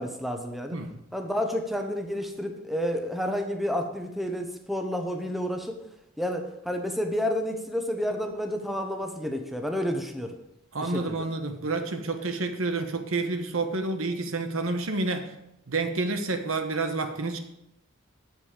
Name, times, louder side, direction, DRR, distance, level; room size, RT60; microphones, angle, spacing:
voice 1, 0.0-0.8 1.1-5.8 6.2-10.3 10.8-11.3, equal, ahead, 4 dB, 0.9 m, -30 dB
voice 2, 10.7-15.3 15.7-17.4, right 3 dB, 90° right, 6 dB, 1.1 m, -29 dB
8.4 x 7.6 x 5.0 m, 0.82 s
head